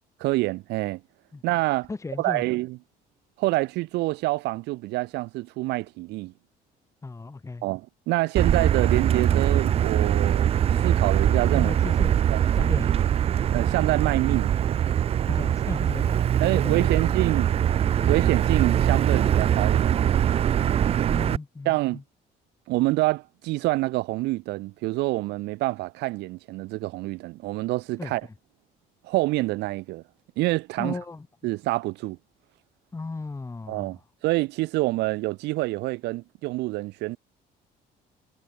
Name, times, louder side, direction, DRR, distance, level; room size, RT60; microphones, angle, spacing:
voice 1, 0.2-1.0 1.4-1.9 2.2-2.8 3.4-6.3 7.6-10.5 10.8-11.7 12.3-12.4 13.5-14.5 16.4-17.5 18.1-20.0 21.0-21.2 21.7-22.0 22.7-28.2 29.0-30.0 30.4-31.0 31.4-32.2 33.7-34.0 34.2-37.2, right 20 dB, 85° right, 0.7 m, -26 dB
voice 2, 1.9-2.4 7.0-7.7 11.5-12.2 12.5-13.1 15.3-17.1 18.0-18.1 21.1-22.0 28.0-28.1 30.8-31.3 32.9-34.0, left 3 dB, 15° left, 1.9 m, -36 dB
Motor vehicle (road), 8.4-21.4, right 10 dB, 35° right, 0.3 m, -22 dB
cardioid pair, 110°, 17 cm